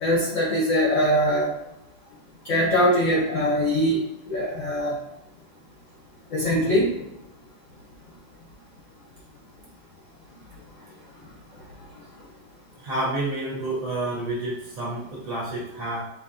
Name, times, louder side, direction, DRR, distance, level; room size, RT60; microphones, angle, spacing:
voice 1, 0.0-1.5 2.4-5.0 6.3-6.9, equal, 65° left, -4 dB, 0.8 m, -22 dB
voice 2, 12.8-16.0, right 2 dB, 50° right, -5 dB, 1.2 m, -29 dB
5.0 x 2.8 x 2.7 m, 0.89 s
omnidirectional pair, 2.2 m